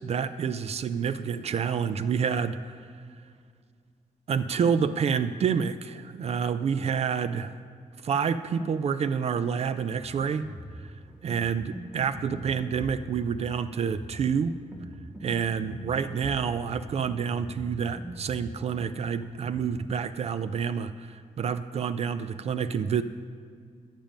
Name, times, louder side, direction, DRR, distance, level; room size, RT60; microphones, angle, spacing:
voice 1, 0.0-2.6 4.3-7.5 8.0-10.5 10.8-10.9 11.2-14.6 15.2-23.0, right 7 dB, 50° right, 12 dB, 0.4 m, -28 dB
sound 1, 9.9-19.7, right 1 dB, 5° right, 1.2 m, -42 dB
10.5 x 9.0 x 5.2 m, 2.2 s
wide cardioid pair, 145°, 14 cm